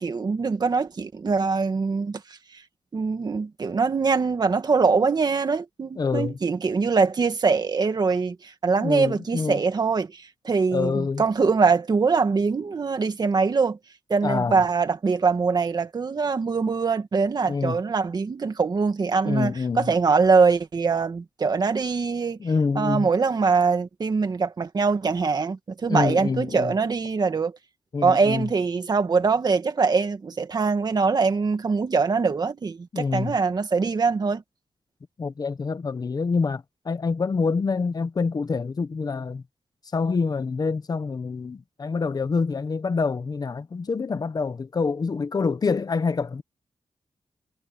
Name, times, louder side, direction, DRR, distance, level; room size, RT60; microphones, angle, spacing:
voice 1, 0.0-2.2 2.5-2.6 2.9-13.8 14.1-22.4 22.8-27.5 28.0-34.4, right 4 dB, 45° right, 1.9 m, -23 dB
voice 2, 6.0-6.4 8.8-9.6 10.7-11.2 14.2-14.6 17.5-17.8 19.2-19.9 22.4-23.1 25.9-26.7 27.9-28.5 32.9-33.4 35.2-39.4 39.9-46.4, left 4 dB, 40° left, 1.0 m, -26 dB
wide cardioid pair, 150°, 10 cm